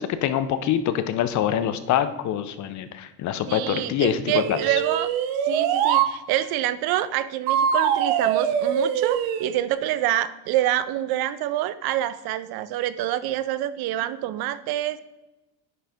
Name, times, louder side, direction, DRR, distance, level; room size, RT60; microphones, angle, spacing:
voice 1, 0.0-4.6, left 10 dB, 40° left, 11 dB, 0.5 m, -25 dB
voice 2, 3.5-5.1 5.5-15.0, right 13 dB, 55° right, 14 dB, 0.5 m, -26 dB
sound 1, 4.3-6.1 7.5-9.5, right 8 dB, 80° right, 0.9 m, -23 dB
10.0 x 3.8 x 3.5 m, 1.0 s
cardioid pair, 145°, 45 cm